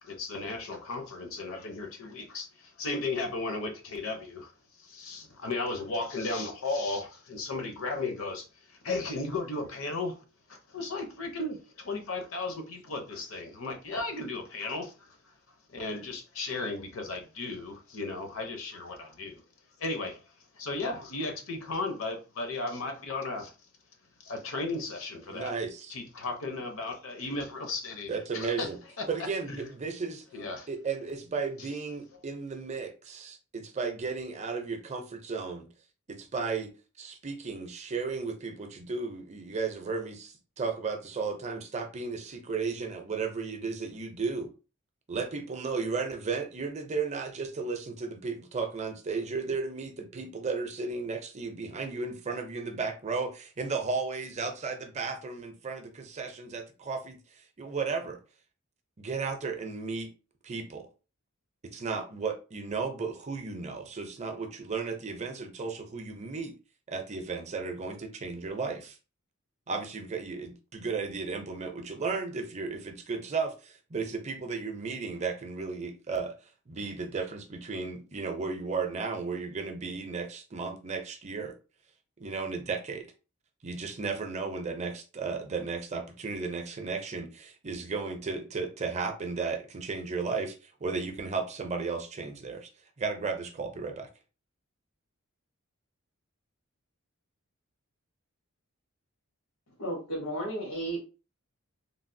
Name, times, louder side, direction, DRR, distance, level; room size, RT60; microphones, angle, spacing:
voice 1, 0.0-10.2 10.5-15.4 15.7-19.4 19.8-23.6 24.2-25.5 25.9-28.7 29.0-29.1 29.5-29.7 30.3-30.7, left 3 dB, 70° left, 0.7 m, -35 dB
voice 2, 25.3-25.9 28.1-28.8 29.1-30.2 30.7-35.7 36.1-36.7 37.0-44.5 45.1-58.2 59.0-60.1 60.4-60.9 61.7-66.6 66.9-69.0 69.7-76.3 76.7-81.5 82.2-83.1 83.6-92.7 93.0-94.1, right 4 dB, 30° right, 0.5 m, -34 dB
voice 3, 99.8-101.0, right 1 dB, 85° left, 1.0 m, -33 dB
3.2 x 2.4 x 2.6 m
head